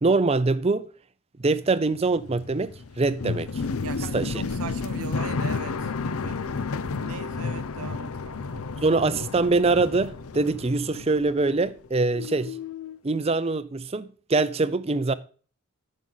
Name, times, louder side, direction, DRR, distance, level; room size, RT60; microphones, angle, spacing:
voice 1, 0.0-0.9 1.4-3.7 4.1-4.4 8.8-12.6 13.0-15.1, right 3 dB, 25° right, 0.5 m, -24 dB
sound 1, 1.7-11.9 12.1-13.0, left 4 dB, 75° left, 0.6 m, -32 dB
voice 2, 3.8-5.9 6.2-6.6 7.0-8.8, right 5 dB, 75° right, 0.8 m, -40 dB
13.5 x 6.3 x 4.0 m
head